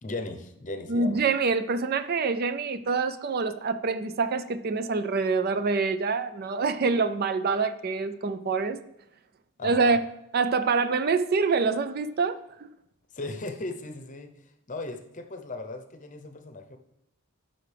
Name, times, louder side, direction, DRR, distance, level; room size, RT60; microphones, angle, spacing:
voice 1, 0.0-1.2 9.6-10.0 13.1-14.3 14.7-16.8, left 2 dB, 35° left, 7 dB, 0.7 m, -37 dB
voice 2, 0.9-8.8 9.6-10.0 10.3-12.7, right 4 dB, 45° right, 12 dB, 0.4 m, -26 dB
13.5 x 5.8 x 3.4 m, 0.82 s
head